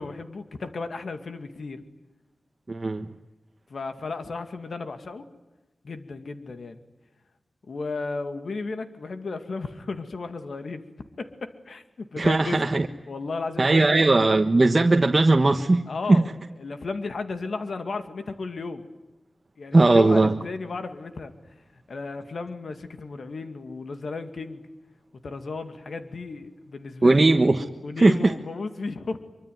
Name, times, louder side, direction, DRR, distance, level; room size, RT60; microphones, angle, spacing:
voice 1, 0.0-1.8 3.7-5.3 5.8-6.8 7.7-10.8 11.2-14.1 15.9-16.3 16.6-18.9 19.6-21.3 21.9-24.7 25.1-27.3 27.8-29.2, left 3 dB, 80° left, 8 dB, 2.4 m, -34 dB
voice 2, 2.7-3.1 12.2-12.9 13.6-16.3 19.7-20.3 27.0-27.6 28.0-28.3, right 2 dB, 40° right, 4 dB, 1.4 m, -19 dB
24.5 x 24.5 x 9.5 m, 1.0 s
wide cardioid pair, 85°, 0 cm